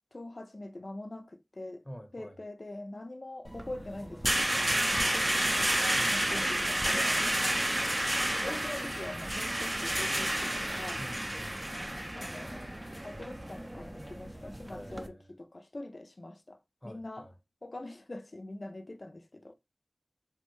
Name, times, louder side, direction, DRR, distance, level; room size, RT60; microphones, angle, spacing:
voice 1, 0.1-1.8 2.1-5.7 6.0-7.5 8.4-11.0 12.1-12.7 13.0-16.6 16.8-17.3 17.6-19.5, left 2 dB, 65° left, 0.4 m, -43 dB
voice 2, 1.8-2.4 4.7-4.9 6.0-6.2 10.9-11.6 14.7-15.3 16.8-17.3, equal, 20° left, 0.7 m, -47 dB
sound 1, 3.5-15.1, right 1 dB, 25° right, 0.4 m, -31 dB
3.4 x 2.1 x 3.0 m
wide cardioid pair, 45°, 0 cm